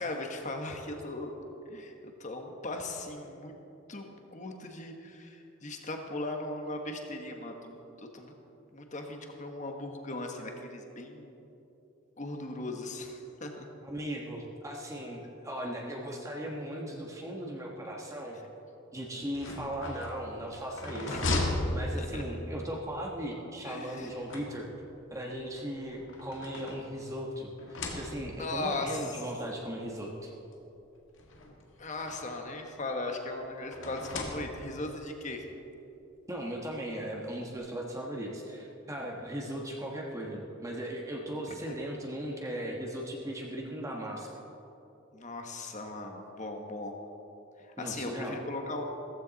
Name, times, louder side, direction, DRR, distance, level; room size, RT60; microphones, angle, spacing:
voice 1, 0.0-1.3 1.7-3.5 3.9-8.3 8.7-11.3 12.2-13.7 21.1-21.6 22.0-22.2 23.6-24.2 28.4-29.2 31.8-35.4 41.7-41.8 45.1-47.0 47.6-48.9, left 2 dB, 35° left, 3 dB, 1.4 m, -38 dB
voice 2, 13.8-18.4 18.9-21.3 21.7-24.7 25.1-30.3 36.3-44.3 47.8-48.4, right 1 dB, 15° right, -1 dB, 1.2 m, -38 dB
sound 1, 19.2-22.5 23.8-25.0 25.8-27.2 27.6-28.5 29.5-29.6 29.9-30.0 31.2-32.5 33.7-34.9, left 2 dB, 65° left, 1.8 m, -36 dB
15.5 x 15.0 x 4.1 m, 2.9 s
head